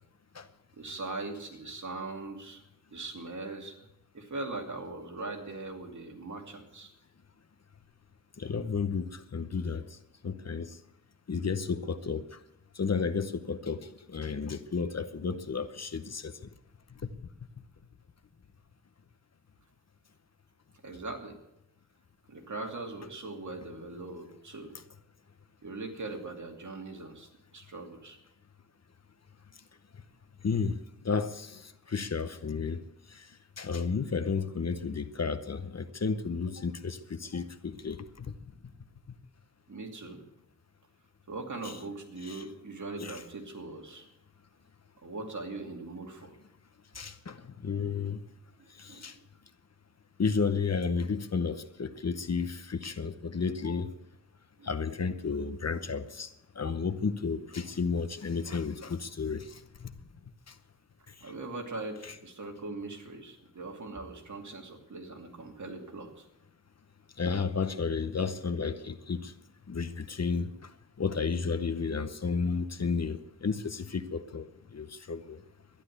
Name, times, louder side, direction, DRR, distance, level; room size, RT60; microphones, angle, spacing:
voice 1, 0.8-2.6 2.9-3.9 4.1-6.9 20.8-21.4 22.3-24.7 25.6-28.2 39.7-40.2 41.3-44.1 45.0-46.4 48.6-49.1 53.6-53.8 54.6-54.7 61.2-66.3, right 3 dB, 60° right, 2 dB, 2.6 m, -40 dB
voice 2, 8.4-9.8 10.2-10.7 11.3-12.2 12.8-13.8 14.1-16.3 30.4-30.8 31.0-31.6 31.9-32.8 33.6-38.3 41.6-41.7 42.2-42.4 43.0-43.2 46.9-47.4 47.6-48.2 48.8-49.1 50.2-53.9 54.6-56.3 56.6-59.5 59.8-59.9 67.2-69.3 69.7-70.5 71.0-74.5 74.7-75.4, left 5 dB, 50° left, 11 dB, 0.9 m, -32 dB
12.0 x 11.0 x 8.0 m, 0.85 s
wide cardioid pair, 115°, 34 cm